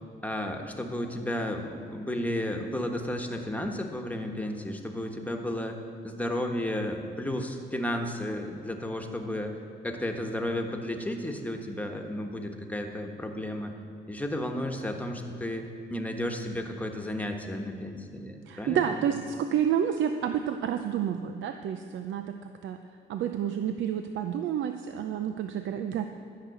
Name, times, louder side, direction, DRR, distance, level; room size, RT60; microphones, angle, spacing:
voice 1, 0.2-5.8 6.0-9.6 9.8-13.7 14.1-19.0, left 1 dB, 5° left, 3 dB, 1.4 m, -33 dB
voice 2, 18.5-22.8 23.1-26.1, right 9 dB, 75° right, 7 dB, 0.6 m, -29 dB
13.0 x 6.0 x 8.0 m, 2.6 s
cardioid pair, 90°, 20 cm